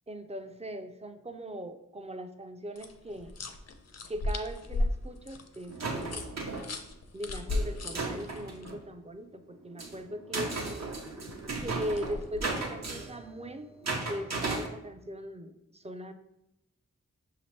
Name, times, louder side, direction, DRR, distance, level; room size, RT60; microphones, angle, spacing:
voice 1, 0.1-3.4 4.1-6.3 7.1-10.5 11.6-13.7 14.1-16.1, equal, 20° right, 7 dB, 0.4 m, -39 dB
sound 1, 2.8-8.7 11.3-12.8, left 2 dB, 60° left, 0.5 m, -36 dB
sound 2, 5.7-6.7 7.5-8.8 9.5-14.7, right 3 dB, 65° right, 0.8 m, -36 dB
5.8 x 2.8 x 3.1 m, 0.87 s
wide cardioid pair, 55°, 30 cm